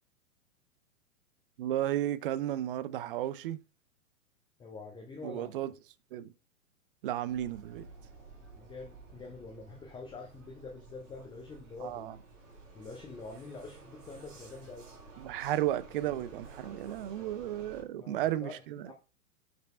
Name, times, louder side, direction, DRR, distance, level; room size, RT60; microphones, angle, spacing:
voice 1, 1.6-3.6 5.2-5.7 6.1-6.3 7.0-7.9 11.8-12.1 15.2-18.9, right 13 dB, 40° right, 0.6 m, -33 dB
voice 2, 4.6-5.5 8.5-12.1 12.7-14.9 17.9-18.9, left 3 dB, 10° left, 0.8 m, -46 dB
Vehicle, 7.3-17.8, right 3 dB, 60° right, 3.3 m, -52 dB
6.1 x 5.2 x 4.3 m
figure-of-eight pair, 105°, 43 cm